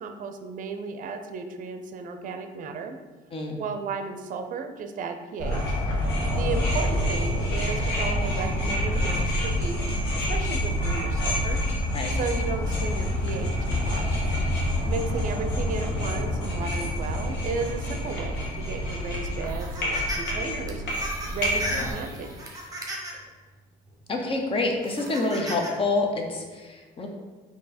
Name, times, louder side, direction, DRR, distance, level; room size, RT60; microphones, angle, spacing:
voice 1, 0.0-3.0 3.6-5.8 6.4-11.6 12.1-14.1 14.8-20.8 21.3-22.3, right 4 dB, 50° right, 7 dB, 0.5 m, -34 dB
sound 1, 5.4-21.9, left 1 dB, 85° left, 1.1 m, -27 dB
sound 2, 19.4-20.3 20.7-23.3 23.9-24.0 24.8-25.7, right 1 dB, 20° right, 1.0 m, -36 dB
voice 2, 24.1-27.1, left 2 dB, 30° left, 2 dB, 0.8 m, -27 dB
4.4 x 2.8 x 4.2 m, 1.3 s
cardioid pair, 110°, 17 cm